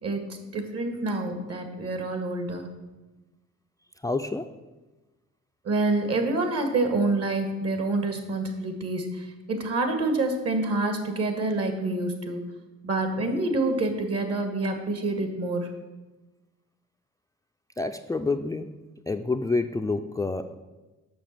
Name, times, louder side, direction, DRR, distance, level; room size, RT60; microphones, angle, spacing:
voice 1, 0.0-2.7 5.6-12.4 12.8-15.7, right 2 dB, 55° right, 6 dB, 1.9 m, -27 dB
voice 2, 4.0-4.6 17.8-18.7 19.1-20.6, left 3 dB, 10° left, 8 dB, 0.4 m, -28 dB
7.0 x 6.1 x 7.5 m, 1.1 s
cardioid pair, 90°, 30 cm